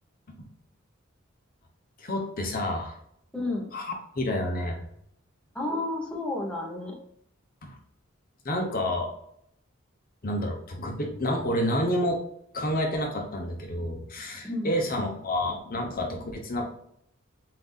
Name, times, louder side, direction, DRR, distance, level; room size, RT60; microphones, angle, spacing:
voice 1, 2.0-3.0 3.7-3.9 4.1-4.8 7.6-7.8 8.4-9.1 10.2-12.2 12.5-16.7, left 1 dB, 45° left, 1 dB, 0.9 m, -29 dB
voice 2, 3.3-3.7 5.5-6.9 14.4-14.7, left 2 dB, 5° left, -3 dB, 1.0 m, -31 dB
7.5 x 2.7 x 2.4 m, 0.72 s
head